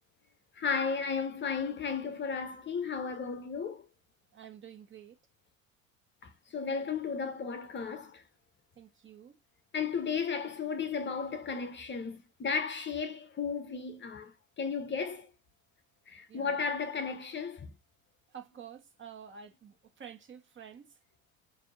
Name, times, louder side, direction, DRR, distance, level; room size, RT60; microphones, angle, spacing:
voice 1, 0.6-3.9 6.2-8.2 9.7-15.3 16.1-17.7, left 5 dB, 25° left, 0.9 m, -34 dB
voice 2, 4.3-5.2 8.7-9.4 16.3-16.6 18.3-21.0, right 8 dB, 30° right, 1.5 m, -49 dB
6.2 x 2.8 x 2.7 m
figure-of-eight pair, 70°, 41 cm